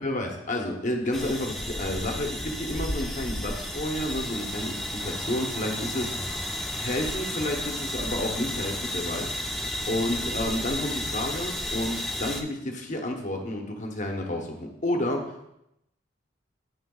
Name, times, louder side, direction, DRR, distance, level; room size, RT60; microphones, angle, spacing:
voice 1, 0.0-15.5, left 1 dB, 40° left, 2 dB, 0.9 m, -31 dB
sound 1, 1.1-12.4, left 1 dB, ahead, 0.4 m, -32 dB
8.6 x 6.5 x 2.3 m, 0.83 s
head